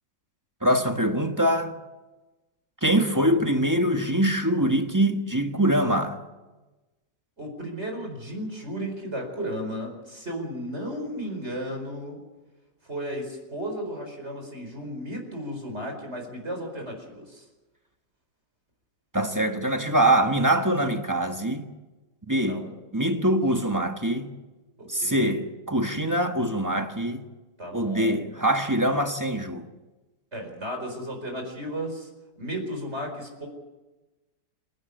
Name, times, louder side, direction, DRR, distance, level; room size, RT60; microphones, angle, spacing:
voice 1, 0.6-1.7 2.8-6.2 19.1-21.7 22.2-22.7 22.9-24.3 24.9-27.2 27.7-29.7, right 1 dB, 10° right, 1.3 m, -23 dB
voice 2, 7.4-12.2 12.8-17.4 22.4-22.7 24.8-25.3 27.6-28.2 30.3-32.1 32.4-33.5, equal, 35° right, 5.0 m, -34 dB
27.5 x 12.0 x 8.5 m
omnidirectional pair, 2.0 m